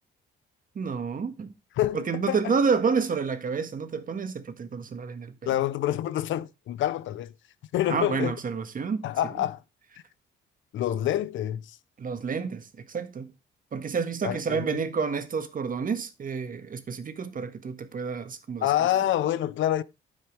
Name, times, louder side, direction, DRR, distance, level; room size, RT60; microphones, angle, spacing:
voice 1, 0.7-1.5 1.9-5.5 7.9-9.1 9.4-9.5 12.0-13.3 13.7-18.7, right 5 dB, 45° right, 1.7 m, -29 dB
voice 2, 1.8-2.5 5.5-7.3 7.7-8.4 9.0-9.6 10.7-11.8 14.2-14.8 18.6-19.8, left 12 dB, 75° left, 0.7 m, -27 dB
10.5 x 7.4 x 3.3 m
cardioid pair, 90°, 20 cm